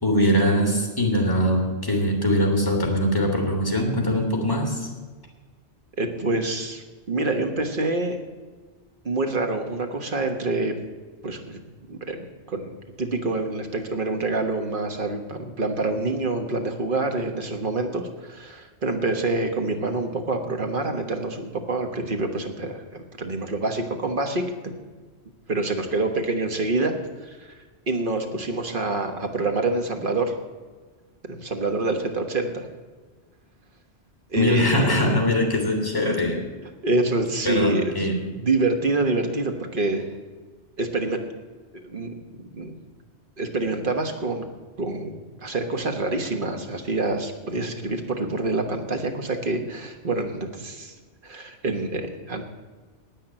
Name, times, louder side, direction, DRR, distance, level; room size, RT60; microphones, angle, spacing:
voice 1, 0.0-4.9 34.4-36.4 37.4-38.3, equal, 20° left, 2 dB, 2.3 m, -22 dB
voice 2, 6.0-8.2 9.0-10.8 11.2-11.6 11.9-24.7 25.5-26.9 27.2-27.6 27.9-30.3 31.3-32.7 34.3-35.2 36.8-38.1 38.4-40.0 40.8-41.2 41.7-42.8 43.4-44.5 44.8-50.9 51.2-52.5, right 2 dB, 50° right, 6 dB, 1.5 m, -26 dB
10.5 x 8.9 x 8.9 m, 1.4 s
omnidirectional pair, 1.1 m